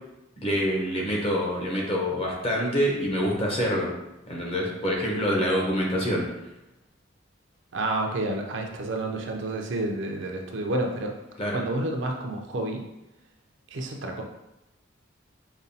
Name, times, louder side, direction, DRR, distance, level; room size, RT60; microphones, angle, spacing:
voice 1, 0.4-3.9 4.3-6.2 11.4-11.6, equal, 30° left, -2 dB, 0.8 m, -26 dB
voice 2, 7.7-11.1 11.5-12.8 13.7-14.2, right 2 dB, 65° right, 2 dB, 0.5 m, -29 dB
5.2 x 2.3 x 2.7 m, 0.91 s
head